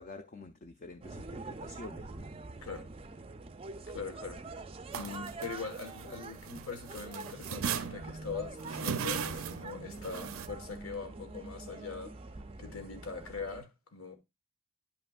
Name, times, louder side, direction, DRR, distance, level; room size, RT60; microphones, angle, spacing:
voice 1, 0.0-2.3, left 3 dB, 35° left, 0.4 m, -48 dB
sound 1, 1.0-13.6, right 3 dB, 25° right, 0.4 m, -45 dB
voice 2, 3.9-4.6 4.9-12.2 12.6-14.2, left 5 dB, 85° left, 1.5 m, -42 dB
sound 2, 4.9-6.6 6.9-10.5, right 7 dB, 85° right, 0.6 m, -37 dB
9.9 x 5.6 x 2.4 m
head